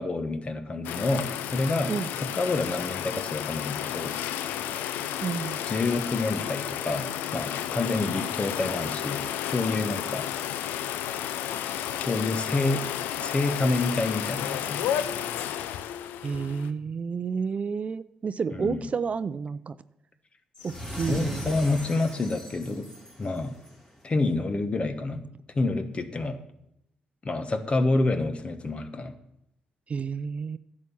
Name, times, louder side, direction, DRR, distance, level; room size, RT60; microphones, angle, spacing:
voice 1, 0.0-1.9 2.3-4.2 5.6-10.3 12.0-12.8 13.2-15.0 18.5-18.9 21.1-22.9 23.2-23.5 24.0-25.2 25.5-26.4 27.2-29.1, left 2 dB, 35° left, 9 dB, 1.3 m, -28 dB
sound 1, 0.8-16.7, left 10 dB, 85° left, 0.5 m, -32 dB
voice 2, 5.2-5.6 16.2-19.8 20.6-21.7 29.9-30.6, right 5 dB, 45° right, 15 dB, 0.5 m, -30 dB
sound 2, 20.5-23.9, equal, 20° left, 3.5 m, -39 dB
11.0 x 7.5 x 7.1 m, 0.81 s
supercardioid pair, 55°, 3 cm